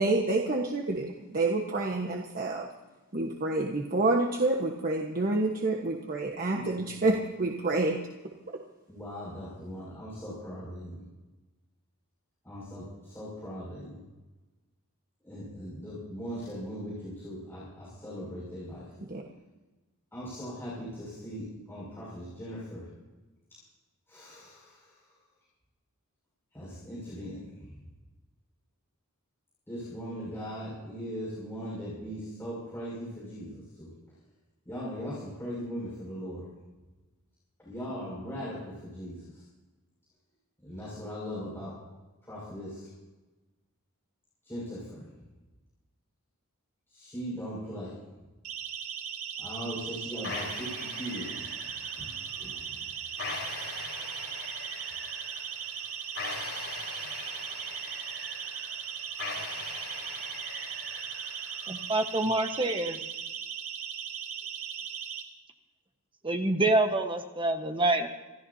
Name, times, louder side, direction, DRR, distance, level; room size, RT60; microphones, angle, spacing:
voice 1, 0.0-2.7 3.1-8.0 8.5-8.6 19.1-19.2, right 2 dB, 40° right, 0 dB, 1.3 m, -28 dB
voice 2, 6.5-7.1 8.9-11.0 12.4-14.0 15.2-18.8 20.1-22.9 24.1-25.1 26.5-27.8 29.7-33.9 34.6-36.5 37.6-39.4 40.6-41.7 42.2-42.9 44.4-45.1 46.9-47.9 49.4-51.5 52.0-53.2, equal, 10° left, -10 dB, 6.5 m, -39 dB
Siren, 48.4-65.2, right 8 dB, 90° right, 2.0 m, -38 dB
sound 1, 50.2-62.2, left 4 dB, 70° left, 4.4 m, -42 dB
voice 3, 61.7-63.0 66.2-68.1, right 2 dB, 25° right, 5 dB, 1.2 m, -26 dB
27.0 x 14.0 x 2.8 m, 1.2 s
head